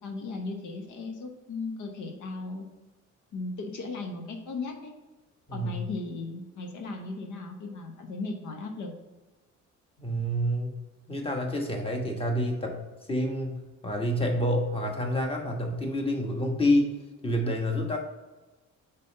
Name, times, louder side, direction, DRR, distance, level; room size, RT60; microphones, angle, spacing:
voice 1, 0.0-2.7 3.3-4.9 5.5-8.9, left 3 dB, 75° left, 3 dB, 1.0 m, -36 dB
voice 2, 10.0-10.7 11.1-12.8 13.1-13.5 13.8-16.9 17.2-18.0, equal, 20° left, 1 dB, 1.3 m, -28 dB
5.3 x 4.1 x 5.3 m, 1.2 s
cardioid pair, 90°, 30 cm